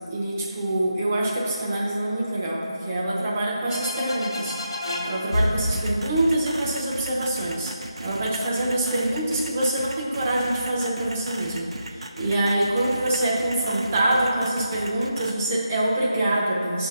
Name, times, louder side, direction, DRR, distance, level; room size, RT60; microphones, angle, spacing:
voice 1, 0.1-16.9, right 1 dB, 20° right, -5 dB, 0.7 m, -25 dB
sound 1, 3.7-7.3, left 1 dB, 55° left, 0.9 m, -29 dB
sound 2, 5.7-15.3, right 1 dB, 70° right, 0.5 m, -37 dB
6.7 x 2.6 x 5.4 m, 2.3 s
figure-of-eight pair, 170°, 3 cm